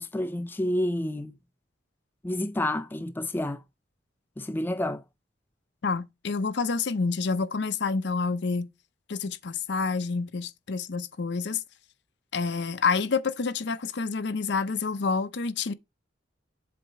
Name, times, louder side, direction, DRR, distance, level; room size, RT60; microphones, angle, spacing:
voice 1, 0.0-1.3 2.2-3.6 4.4-5.0, left 1 dB, 10° left, 0.3 m, -29 dB
voice 2, 5.8-8.7 9.1-11.6 12.3-15.7, left 4 dB, 65° left, 0.6 m, -28 dB
7.7 x 2.8 x 5.5 m
head